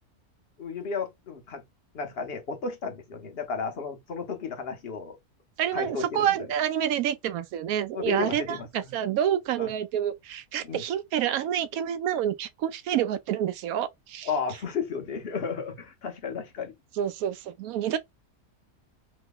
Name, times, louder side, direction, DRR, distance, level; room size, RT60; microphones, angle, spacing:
voice 1, 0.6-1.6 1.9-5.2 5.7-6.3 7.9-8.9 9.6-9.7 10.6-10.8 14.2-16.7, left 5 dB, 45° left, 1.0 m, -33 dB
voice 2, 5.6-14.3 17.0-18.0, right 10 dB, 75° right, 1.0 m, -28 dB
3.1 x 2.2 x 3.5 m
omnidirectional pair, 1.6 m